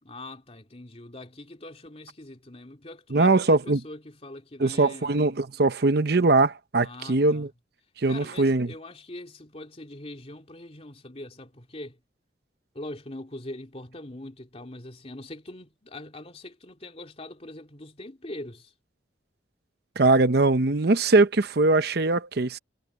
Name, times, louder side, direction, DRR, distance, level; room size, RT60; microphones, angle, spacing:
voice 1, 0.0-5.2 6.8-7.5 8.1-12.0 12.7-18.7, left 1 dB, 35° left, 2.8 m, -42 dB
voice 2, 3.1-3.8 4.6-7.5 8.0-8.7 20.0-22.6, right 3 dB, 60° right, 0.8 m, -21 dB
head